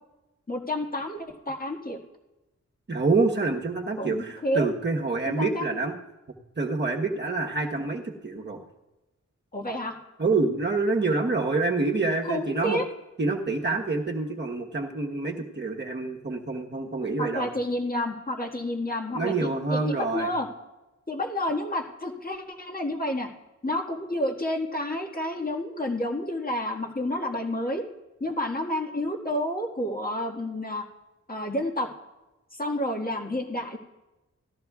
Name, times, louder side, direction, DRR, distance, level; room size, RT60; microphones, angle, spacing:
voice 1, 0.5-2.0 4.0-4.7 5.2-5.8 9.5-9.9 12.2-12.8 17.2-20.5 21.1-23.3 23.6-27.8 28.2-30.8 31.3-31.9 32.5-33.8, left 1 dB, 30° left, -1 dB, 1.7 m, -30 dB
voice 2, 2.9-6.0 6.6-8.6 10.2-12.8 13.2-17.5 19.1-20.3, right 3 dB, 35° right, 0 dB, 1.2 m, -27 dB
18.0 x 13.5 x 2.4 m, 1.0 s
wide cardioid pair, 130°, 29 cm